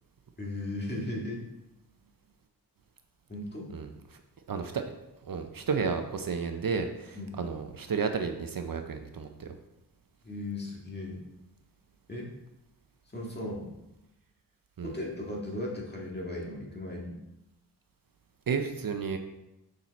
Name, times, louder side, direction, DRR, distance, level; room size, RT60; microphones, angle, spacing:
voice 1, 0.4-1.4 3.3-3.7 7.1-7.4 10.2-11.2 12.1-12.3 13.1-13.7 14.8-17.2, left 1 dB, 25° left, -3 dB, 1.8 m, -36 dB
voice 2, 4.5-4.8 5.2-9.6 14.8-14.9 18.5-19.2, right 5 dB, 55° right, 6 dB, 0.6 m, -32 dB
6.7 x 5.9 x 4.1 m, 0.91 s
wide cardioid pair, 120°, 40 cm